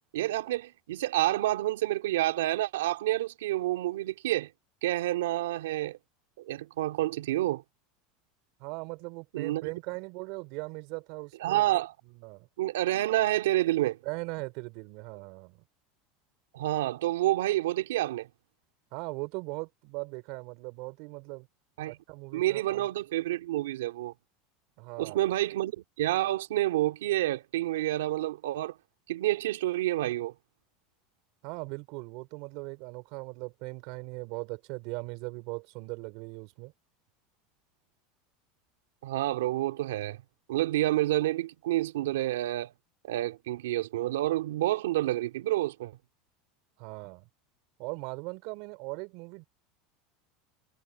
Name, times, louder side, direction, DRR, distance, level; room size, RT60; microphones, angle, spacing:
voice 1, 0.1-4.5 4.8-6.0 6.4-7.6 9.3-9.7 11.4-11.9 12.6-14.0 16.5-18.3 21.8-22.0 22.3-24.1 25.0-28.8 29.1-30.3 39.0-40.2 40.5-42.7 43.0-46.0, right 15 dB, 85° right, 2.8 m, -28 dB
voice 2, 8.6-11.8 12.0-12.5 14.0-15.6 18.9-21.5 21.9-22.9 24.8-25.2 31.4-36.7 46.8-47.3 47.8-49.4, right 28 dB, 65° right, 5.2 m, -39 dB
supercardioid pair, 110°, 0 cm